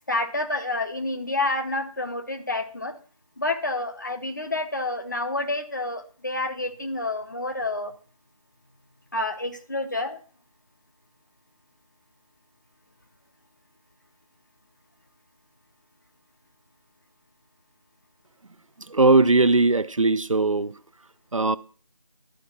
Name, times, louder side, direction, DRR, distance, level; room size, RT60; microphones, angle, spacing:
voice 1, 0.1-2.9 3.4-7.9 9.1-10.2, left 2 dB, 30° left, 0.9 m, -28 dB
voice 2, 18.9-20.7 21.3-21.6, right 3 dB, 60° right, 0.5 m, -19 dB
11.5 x 5.0 x 6.9 m
figure-of-eight pair, 170°, 19 cm